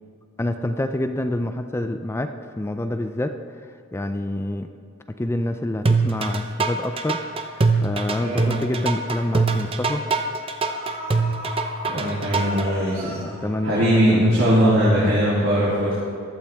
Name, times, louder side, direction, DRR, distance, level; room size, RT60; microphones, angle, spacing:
voice 1, 0.4-3.4 3.9-4.7 5.2-10.1 13.0-15.2, left 1 dB, 10° left, 7 dB, 0.4 m, -27 dB
sound 1, 5.9-12.7, right 3 dB, 30° right, 0.7 m, -22 dB
voice 2, 8.2-8.6 11.8-13.1 13.6-15.9, equal, 65° right, -8 dB, 2.8 m, -20 dB
sound 2, 10.6-14.6 14.9-15.0, right 1 dB, 50° right, 2.4 m, -38 dB
15.0 x 12.0 x 3.5 m, 2.2 s
head